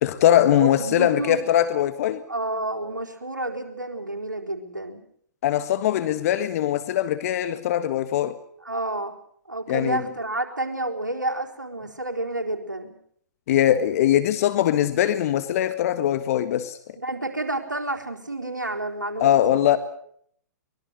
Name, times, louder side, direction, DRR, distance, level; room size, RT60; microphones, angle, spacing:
voice 1, 0.0-2.2 5.4-8.4 9.7-10.0 13.5-16.8 19.2-19.8, left 11 dB, 50° left, 1.7 m, -21 dB
voice 2, 0.6-1.4 2.3-5.0 8.6-9.1 9.5-12.9 17.0-19.5, right 2 dB, 90° right, 4.3 m, -30 dB
24.0 x 21.5 x 6.7 m
figure-of-eight pair, 115°, 10 cm